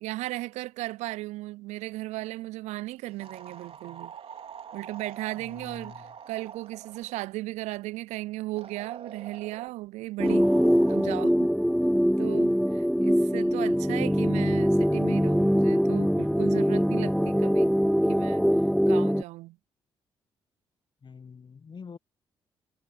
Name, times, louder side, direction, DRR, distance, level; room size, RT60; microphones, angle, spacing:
voice 1, 0.0-4.1 4.7-10.5 10.9-11.5 12.2-17.7 18.1-18.5 18.9-19.6, right 18 dB, 70° right, 0.4 m, -36 dB
sound 1, 3.2-7.2 8.6-9.7 10.2-11.2, right 7 dB, 50° right, 4.1 m, -45 dB
voice 2, 5.4-6.0 12.3-12.8 21.0-22.0, left 6 dB, 40° left, 1.1 m, -46 dB
sound 2, 10.2-19.2, equal, ahead, 0.3 m, -23 dB
hypercardioid pair, 40°, 12 cm